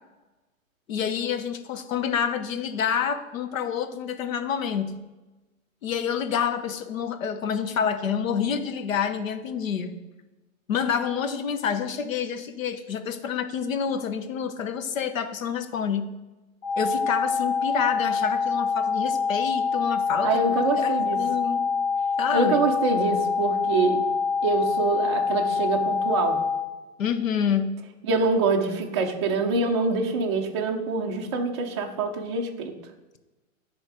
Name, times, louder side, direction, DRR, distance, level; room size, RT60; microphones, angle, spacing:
voice 1, 0.9-4.9 5.8-10.0 10.7-16.1 16.8-20.4 20.8-21.6 22.2-22.6 27.0-27.8, left 7 dB, 65° left, 9 dB, 0.9 m, -28 dB
sound 1, 16.6-26.6, left 5 dB, 45° left, 2.8 m, -25 dB
voice 2, 20.2-21.2 22.3-24.0 24.4-26.4 28.1-32.7, right 3 dB, 20° right, 1 dB, 0.4 m, -25 dB
9.9 x 3.5 x 4.9 m, 1.1 s
hypercardioid pair, 150°, 42 cm